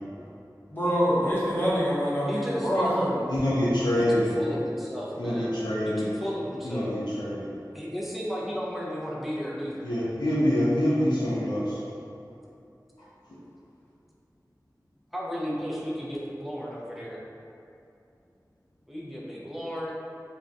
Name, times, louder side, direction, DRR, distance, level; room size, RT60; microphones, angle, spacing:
voice 1, 0.7-3.2, equal, 25° left, -10 dB, 0.8 m, -25 dB
voice 2, 2.2-3.3 4.0-5.5 5.9-6.9 7.7-9.9 15.1-17.2 18.9-19.9, equal, ahead, -6 dB, 0.6 m, -34 dB
voice 3, 3.3-4.3 5.2-6.1 6.6-7.5 9.8-11.8, equal, 90° left, -9 dB, 0.6 m, -25 dB
2.4 x 2.2 x 3.8 m, 2.7 s
wide cardioid pair, 45°, 7 cm